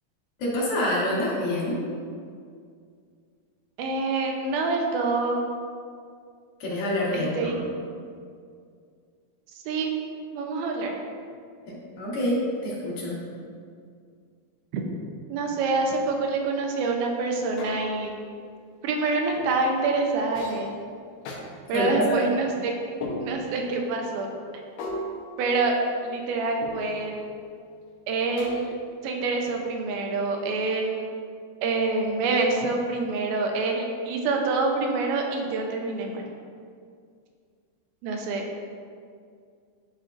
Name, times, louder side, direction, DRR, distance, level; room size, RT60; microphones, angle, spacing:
voice 1, 0.4-1.8 6.6-7.6 11.7-13.2 21.7-22.2, left 1 dB, 65° left, -7 dB, 3.1 m, -26 dB
voice 2, 3.8-5.4 7.1-7.6 9.7-10.0 10.3-10.9 14.7-14.8 15.3-18.1 18.8-20.7 21.7-22.7 23.2-24.3 25.4-25.7 26.0-27.2 28.1-28.8 29.0-31.1 31.6-36.2 38.0-38.4, right 3 dB, 80° right, 1 dB, 2.5 m, -26 dB
sound 1, 17.6-18.2 19.4-19.7 20.3-20.7 21.2-21.4 23.0-23.6 24.8-26.1 26.6-27.1 28.4-29.0, left 1 dB, 85° left, 2.9 m, -37 dB
11.0 x 4.4 x 2.5 m, 2.2 s
omnidirectional pair, 4.5 m